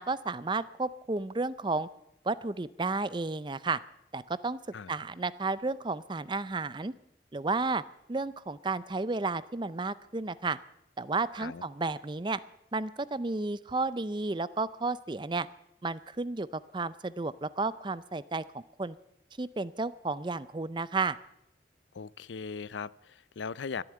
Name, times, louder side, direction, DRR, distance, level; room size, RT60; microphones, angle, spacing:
voice 1, 0.0-1.9 2.2-3.8 4.1-4.6 4.9-6.9 7.3-7.8 8.1-10.6 11.0-12.4 12.7-15.5 15.8-19.0 19.4-21.2, right 3 dB, 25° right, 17 dB, 0.5 m, -32 dB
voice 2, 21.9-23.8, left 5 dB, 90° left, 20 dB, 0.5 m, -39 dB
14.0 x 11.0 x 8.8 m, 0.81 s
head